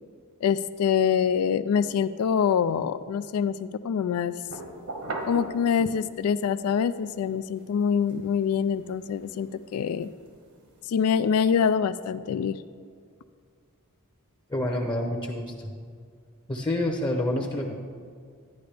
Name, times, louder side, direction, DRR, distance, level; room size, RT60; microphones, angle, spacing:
voice 1, 0.4-4.4 5.3-10.1 10.9-12.6, left 7 dB, 75° left, 14 dB, 0.3 m, -25 dB
sound 1, 4.4-6.3 6.8-11.4, right 2 dB, 75° right, 1.6 m, -41 dB
voice 2, 14.5-15.7 16.5-17.7, left 1 dB, 20° left, 1 dB, 0.7 m, -28 dB
11.5 x 10.5 x 3.4 m, 2.1 s
head